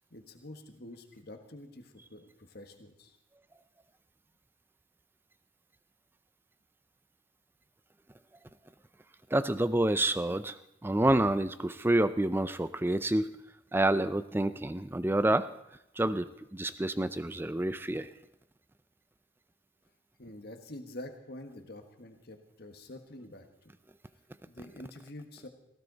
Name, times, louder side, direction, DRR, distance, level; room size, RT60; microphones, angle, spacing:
voice 1, 0.1-3.2 20.2-23.4 24.5-25.5, left 1 dB, 50° left, 5 dB, 1.5 m, -47 dB
voice 2, 9.3-10.6 10.8-13.3 13.7-15.5 16.0-18.1, right 1 dB, 10° right, 13 dB, 0.4 m, -28 dB
18.0 x 16.0 x 4.0 m, 0.83 s
head